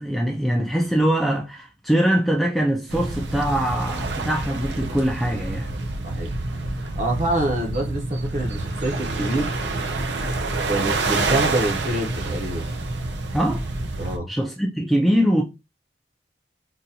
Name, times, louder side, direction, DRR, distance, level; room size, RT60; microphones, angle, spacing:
voice 1, 0.0-5.7 13.3-13.6 14.3-15.4, equal, ahead, 0.4 m, -22 dB
sound 1, 2.9-14.2, right 2 dB, 75° right, 0.6 m, -27 dB
voice 2, 6.0-6.4 6.8-9.6 10.7-12.7 14.0-14.3, right 1 dB, 40° right, 0.8 m, -26 dB
3.9 x 2.3 x 2.7 m
head